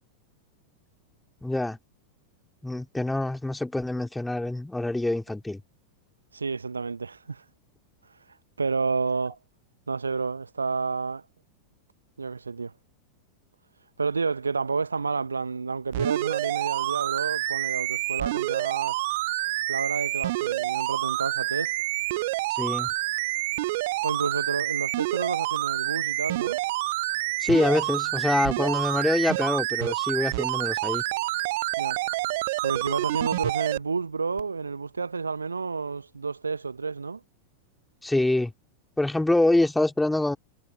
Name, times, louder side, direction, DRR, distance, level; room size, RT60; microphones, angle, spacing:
voice 1, 1.4-1.8 2.6-5.6 22.6-22.9 27.4-31.0 38.0-38.5 39.0-40.4, left 2 dB, 5° left, 2.7 m, -25 dB
voice 2, 6.3-7.4 8.0-9.4 9.9-11.2 12.2-12.7 14.0-19.0 19.7-21.7 24.0-26.6 31.8-32.0 32.6-37.2, right 4 dB, 75° right, 0.9 m, -30 dB
sound 1, 15.9-33.8 34.4-34.5, right 19 dB, 50° right, 0.5 m, -28 dB
figure-of-eight pair, 90°, 0 cm